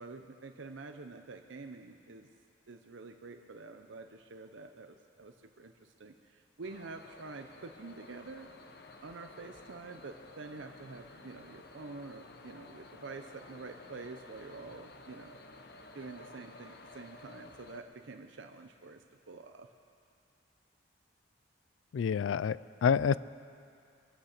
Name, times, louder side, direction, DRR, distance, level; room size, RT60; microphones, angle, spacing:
voice 1, 0.0-2.3 2.7-8.5 9.0-15.4 15.9-19.7, right 3 dB, 75° right, 5 dB, 0.7 m, -47 dB
sound 1, 6.6-17.8, left 2 dB, 55° left, 0.9 m, -53 dB
voice 2, 21.9-23.2, left 6 dB, 80° left, 19 dB, 0.3 m, -28 dB
23.5 x 8.8 x 6.6 m, 2.4 s
head